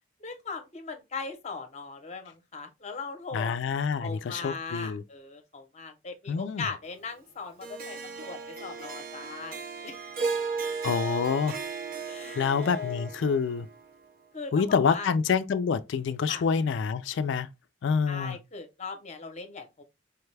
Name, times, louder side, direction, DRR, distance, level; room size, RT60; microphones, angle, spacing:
voice 1, 0.2-3.6 4.0-9.9 12.1-13.1 14.3-15.1 16.3-16.4 18.1-19.8, left 4 dB, 35° left, 0.7 m, -39 dB
voice 2, 3.3-5.0 6.3-6.7 10.8-11.6 12.4-13.7 14.5-17.5 17.8-18.4, left 6 dB, 65° left, 0.3 m, -27 dB
Harp, 7.6-14.0, right 4 dB, 45° right, 0.5 m, -36 dB
4.7 x 2.2 x 3.2 m
head